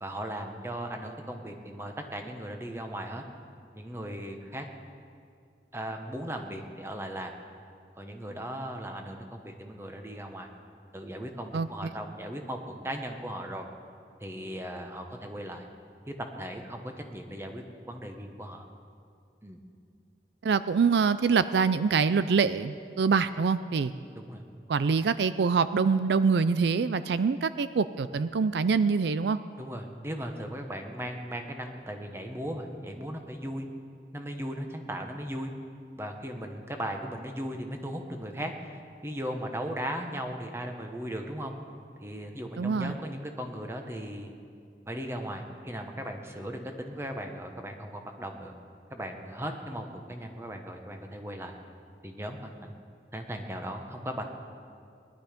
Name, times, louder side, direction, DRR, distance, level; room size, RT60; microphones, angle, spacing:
voice 1, 0.0-3.2 3.7-4.7 5.7-7.3 8.0-10.5 10.9-13.7 14.2-15.6 16.2-18.6 19.4-19.6 24.1-24.4 29.6-33.7 34.1-35.5 36.0-41.5 42.0-44.3 44.9-48.5 48.9-51.5 52.0-52.7 53.1-54.2, equal, 15° right, 4 dB, 1.1 m, -37 dB
voice 2, 11.5-11.9 20.4-23.9 24.7-29.4 42.6-42.9, right 5 dB, 75° right, 14 dB, 0.4 m, -25 dB
20.0 x 11.5 x 5.2 m, 2.4 s
head